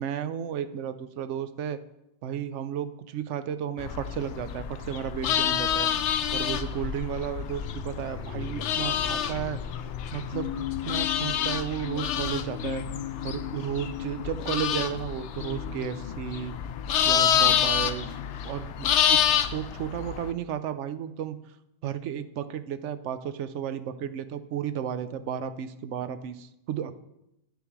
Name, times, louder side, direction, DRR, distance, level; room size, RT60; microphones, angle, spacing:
voice 1, 0.0-1.8 2.2-5.9 6.3-9.6 10.1-10.5 10.8-12.8 13.2-16.5 17.0-19.2 19.4-21.6 21.8-26.9, right 9 dB, 75° right, 12 dB, 0.9 m, -33 dB
sound 1, 3.8-20.3, left 9 dB, 70° left, 0.8 m, -28 dB
sound 2, 10.3-18.5, left 11 dB, 55° left, 0.5 m, -38 dB
9.6 x 6.9 x 4.6 m, 0.87 s
omnidirectional pair, 1.2 m